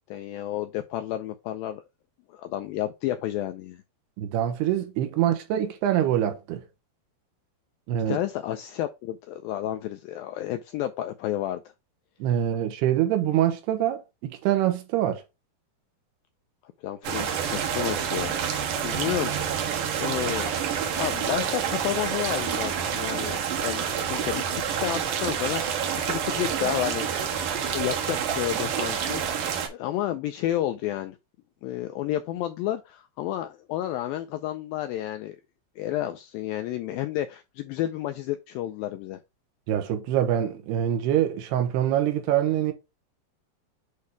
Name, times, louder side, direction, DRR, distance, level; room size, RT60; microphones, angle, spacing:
voice 1, 0.1-1.8 2.3-3.8 8.1-11.7 16.8-19.6 20.0-20.5 20.9-27.1 27.7-31.2 31.6-35.4 35.8-39.2, left 13 dB, 85° left, 2.1 m, -31 dB
voice 2, 4.2-6.6 7.9-8.2 12.2-15.2 39.7-42.7, right 11 dB, 80° right, 3.0 m, -25 dB
sound 1, 17.0-29.7, right 8 dB, 65° right, 2.2 m, -28 dB
8.4 x 2.8 x 4.6 m
omnidirectional pair, 4.7 m